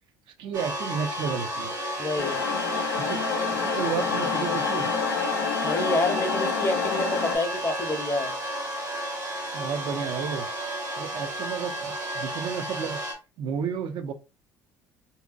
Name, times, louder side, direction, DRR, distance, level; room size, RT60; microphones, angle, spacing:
voice 1, 0.4-1.7 3.0-3.2 3.5-4.9 9.5-10.5 11.0-13.0 13.4-14.1, right 7 dB, 55° right, 0.5 m, -32 dB
sound 1, 0.5-13.1, equal, 85° right, 0.8 m, -32 dB
voice 2, 2.0-2.4 5.6-8.3, left 2 dB, 30° left, 0.7 m, -27 dB
sound 2, 2.2-7.4, left 6 dB, 80° left, 0.5 m, -28 dB
2.7 x 2.1 x 2.4 m
hypercardioid pair, 60°, 9 cm